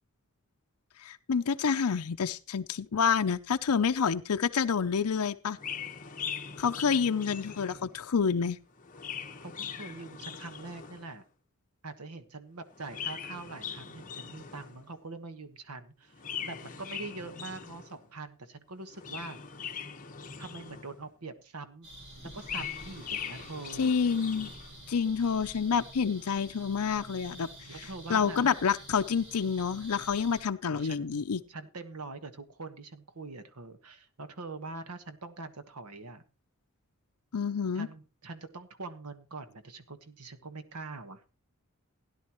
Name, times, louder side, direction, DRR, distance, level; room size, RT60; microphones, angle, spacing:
voice 1, 1.0-5.6 6.6-8.6 23.8-24.5 24.9-27.5 27.8-31.4 37.3-37.9, left 6 dB, 85° left, 7 dB, 0.6 m, -28 dB
Chirp tweet, 5.5-8.0 8.7-11.2 12.7-14.9 16.1-18.0 18.8-21.1 22.2-24.7, left 7 dB, 35° left, 1.2 m, -41 dB
voice 2, 9.4-11.2 11.8-16.1 16.4-19.4 20.4-21.9 22.3-23.9 27.7-28.5 30.7-31.2 31.5-36.2 37.7-41.2, right 3 dB, 90° right, 10 dB, 1.3 m, -43 dB
sound 1, 21.8-30.4, right 1 dB, 50° right, 6.2 m, -49 dB
16.5 x 10.5 x 3.0 m, 0.31 s
head